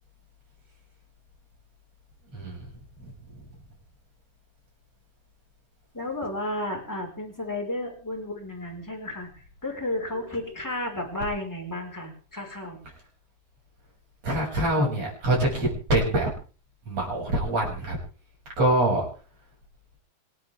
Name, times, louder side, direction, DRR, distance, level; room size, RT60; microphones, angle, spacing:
voice 1, 2.3-2.7 3.0-3.5 14.2-16.3 16.8-18.0 18.6-19.0, right 1 dB, 35° right, -1 dB, 8.0 m, -25 dB
voice 2, 5.9-12.8, left 1 dB, 5° left, 0 dB, 4.6 m, -33 dB
26.5 x 12.0 x 3.7 m, 0.40 s
omnidirectional pair, 5.1 m